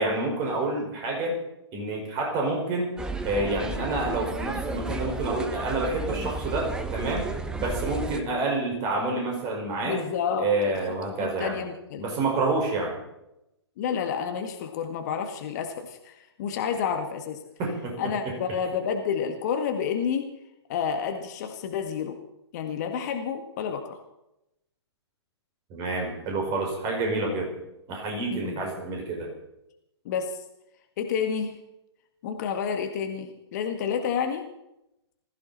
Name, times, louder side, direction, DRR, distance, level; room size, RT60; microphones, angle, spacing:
voice 1, 0.0-1.4 1.7-2.9 3.2-7.3 7.5-10.0 10.4-11.6 12.0-13.0 17.6-18.4 25.7-27.5 27.9-29.3, right 2 dB, 25° right, 1 dB, 5.4 m, -28 dB
sound 1, 3.0-8.2, right 2 dB, 5° right, 0.9 m, -32 dB
voice 2, 9.8-10.7 11.1-12.1 13.8-17.4 18.0-20.3 20.7-22.2 22.5-24.0 28.3-28.6 30.0-30.4 31.0-31.5 32.2-34.5, left 7 dB, 35° left, 5 dB, 1.7 m, -30 dB
20.5 x 15.0 x 4.3 m, 0.87 s
figure-of-eight pair, 125°, 15 cm